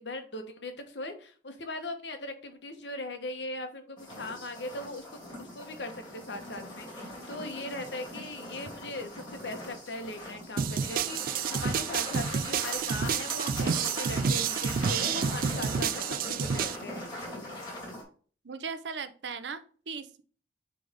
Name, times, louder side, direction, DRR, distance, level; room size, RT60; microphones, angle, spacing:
voice 1, 0.0-5.0 5.4-17.3, left 2 dB, 85° left, 6 dB, 1.2 m, -39 dB
sound 1, 4.0-18.0, left 1 dB, 25° left, 2.9 m, -41 dB
sound 2, 10.6-16.8, right 6 dB, 50° right, 0.3 m, -29 dB
voice 2, 18.4-20.2, right 5 dB, 85° right, 11 dB, 0.7 m, -38 dB
9.3 x 3.5 x 3.6 m, 0.41 s
head